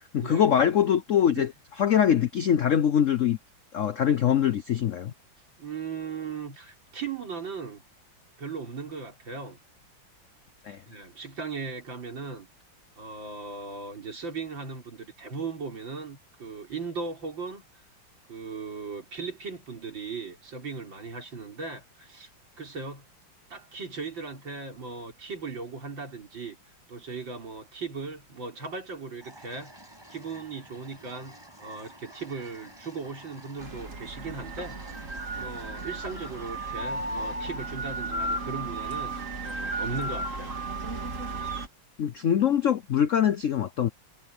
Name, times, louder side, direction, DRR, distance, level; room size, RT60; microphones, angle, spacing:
voice 1, 0.1-1.5 1.8-3.4 3.7-5.1 10.7-10.8 42.0-43.9, left 9 dB, 70° left, 0.7 m, -23 dB
voice 2, 5.6-7.8 8.4-9.6 10.9-12.5 13.0-17.6 18.3-22.3 22.6-23.0 23.5-26.6 26.9-35.1 35.3-40.5, right 4 dB, 65° right, 5.0 m, -38 dB
sound 1, 29.2-37.4, right 1 dB, 10° right, 7.6 m, -50 dB
sound 2, 33.6-41.7, right 2 dB, 40° right, 2.9 m, -34 dB
omnidirectional pair, 2.2 m